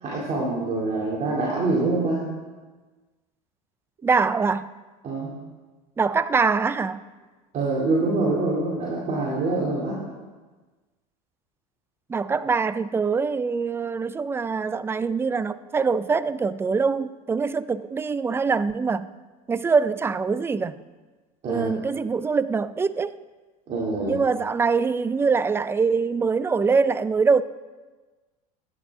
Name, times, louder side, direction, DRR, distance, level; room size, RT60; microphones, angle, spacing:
voice 1, 0.0-2.2 5.0-5.3 7.5-10.0 21.4-21.7 23.7-24.2, right 2 dB, 40° right, 2.7 m, -25 dB
voice 2, 4.0-4.7 6.0-7.0 12.1-19.1 19.5-20.7 21.5-23.2 24.1-27.4, right 5 dB, 15° right, 0.3 m, -23 dB
12.0 x 9.2 x 3.6 m
supercardioid pair, 105°, 19 cm